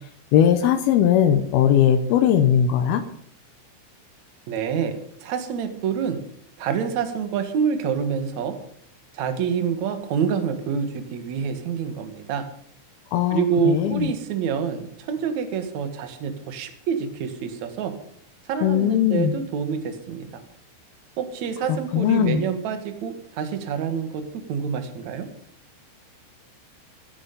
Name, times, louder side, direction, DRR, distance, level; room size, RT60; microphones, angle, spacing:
voice 1, 0.3-3.0 13.1-14.1 18.6-19.4 21.9-22.4, left 9 dB, 90° left, 9 dB, 2.2 m, -19 dB
voice 2, 4.5-6.2 6.6-8.5 9.1-12.5 13.3-17.9 18.5-20.4 21.2-25.3, right 6 dB, 60° right, 8 dB, 2.0 m, -27 dB
14.5 x 11.5 x 5.4 m, 0.66 s
omnidirectional pair, 5.6 m